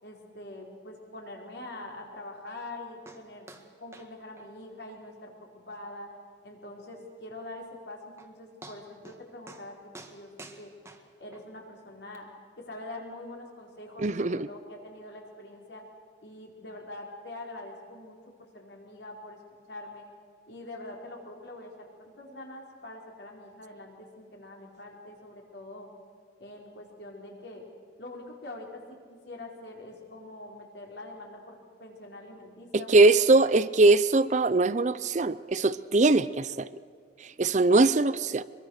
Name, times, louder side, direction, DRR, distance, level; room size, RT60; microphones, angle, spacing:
voice 1, 0.0-6.1 6.4-10.7 11.2-12.3 12.6-15.8 16.2-19.4 19.7-20.1 20.5-25.9 26.4-27.6 28.0-29.0 29.2-33.5, left 2 dB, 60° left, 0 dB, 4.6 m, -44 dB
sound 1, 3.1-3.2 3.5-3.7 3.9-4.1 4.4-4.5 4.9-5.0 5.4-5.5 6.0-6.1 7.7-7.8 8.2-8.3 8.6-9.2 9.5-9.7 9.9-11.4 12.1-12.2, right 2 dB, 15° right, 1.7 m, -48 dB
voice 2, 14.0-14.5 32.7-36.7 37.4-38.4, right 2 dB, 40° right, 15 dB, 0.5 m, -21 dB
24.5 x 22.5 x 6.6 m, 2.1 s
head